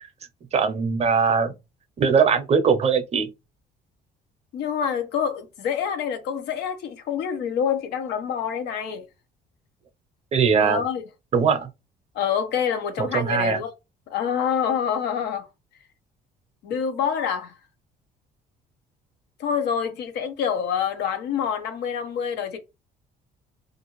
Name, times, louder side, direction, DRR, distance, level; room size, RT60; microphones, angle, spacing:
voice 1, 0.5-1.5 2.0-3.3 10.3-10.8 11.3-11.7 13.0-13.6, right 6 dB, 40° right, 0.6 m, -20 dB
voice 2, 4.5-9.0 10.6-11.0 12.1-13.7 14.1-15.5 16.6-17.5 19.4-22.6, left 7 dB, 80° left, 0.7 m, -26 dB
2.5 x 2.4 x 3.0 m
cardioid pair, 110°, 17 cm